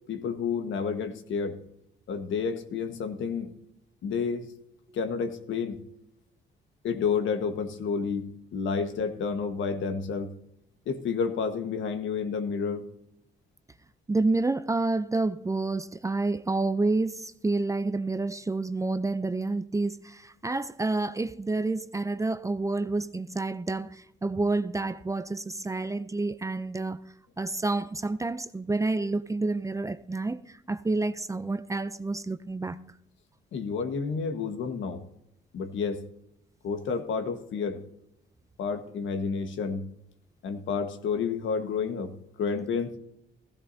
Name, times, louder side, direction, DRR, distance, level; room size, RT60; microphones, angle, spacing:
voice 1, 0.1-1.6 2.1-3.5 4.0-4.5 4.9-5.8 6.8-10.3 10.9-12.8 33.5-35.0 35.5-36.0 36.6-37.8 38.6-39.9 40.4-43.0, left 5 dB, 75° left, 1.4 m, -30 dB
voice 2, 14.1-27.0 27.4-30.4 30.7-32.8, right 3 dB, 15° right, 0.5 m, -29 dB
15.5 x 15.0 x 2.7 m
cardioid pair, 90°, 20 cm